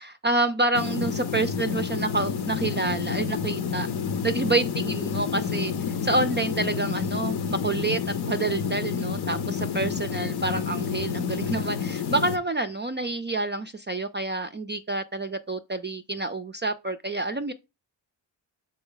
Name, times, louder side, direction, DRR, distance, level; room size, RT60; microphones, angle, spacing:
voice 1, 0.0-3.9 4.2-5.7 6.0-8.0 8.3-17.5, right 2 dB, 25° right, 0.4 m, -28 dB
sound 1, 0.7-12.4, left 6 dB, 60° left, 0.7 m, -29 dB
6.1 x 4.3 x 3.8 m
cardioid pair, 75°, 46 cm